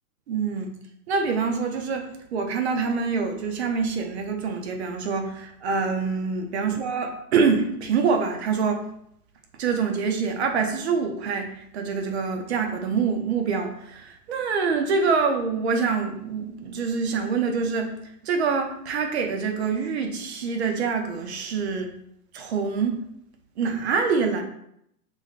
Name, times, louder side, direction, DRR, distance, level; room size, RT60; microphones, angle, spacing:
voice 1, 0.3-0.7 1.1-8.8 9.6-21.9 22.3-23.0 23.6-24.4, right 5 dB, 45° right, 4 dB, 0.7 m, -25 dB
6.2 x 3.3 x 2.5 m, 0.73 s
hypercardioid pair, 165°, 47 cm